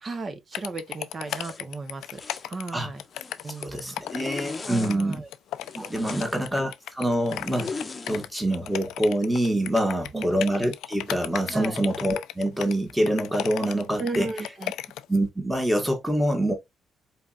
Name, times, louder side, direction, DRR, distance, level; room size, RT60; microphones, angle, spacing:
voice 1, 0.0-2.2 2.5-3.0 3.4-4.0 4.7-5.3 5.9-6.4 9.8-10.3 11.5-11.8 14.0-14.7, right 3 dB, 40° right, 0.9 m, -35 dB
sound 1, 0.5-15.2, left 13 dB, 85° left, 0.3 m, -35 dB
Zipper (clothing), 1.3-1.6 2.0-2.5 3.0-3.7 4.0-4.9 5.6-6.5 7.3-8.3, left 4 dB, 30° left, 0.8 m, -38 dB
voice 2, 3.6-5.2 5.7-14.3 15.1-16.5, right 1 dB, 5° right, 1.5 m, -26 dB
4.2 x 3.3 x 2.4 m
cardioid pair, 90°, 0 cm